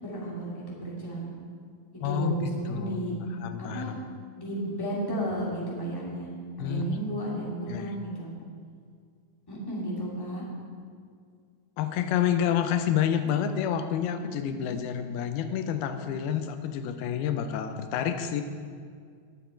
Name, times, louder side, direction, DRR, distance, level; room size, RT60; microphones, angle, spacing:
voice 1, 0.0-1.3 2.0-3.1 3.6-3.9 4.4-6.3 6.6-8.3 9.5-10.4, right 1 dB, 5° left, -6 dB, 2.2 m, -33 dB
voice 2, 2.0-3.0 3.4-4.0 6.6-7.0 7.7-7.9 11.8-18.4, left 9 dB, 85° left, 8 dB, 2.6 m, -29 dB
20.0 x 7.3 x 4.5 m, 2.1 s
omnidirectional pair, 4.3 m